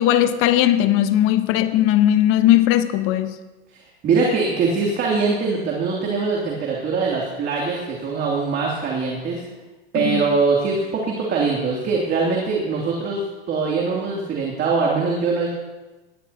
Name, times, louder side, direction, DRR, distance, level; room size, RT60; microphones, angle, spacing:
voice 1, 0.0-3.3 10.0-10.2, left 12 dB, 40° left, 1.1 m, -18 dB
voice 2, 3.7-9.4 9.9-15.5, right 4 dB, 30° right, 2.8 m, -22 dB
19.5 x 14.0 x 2.9 m
hypercardioid pair, 115°, 31 cm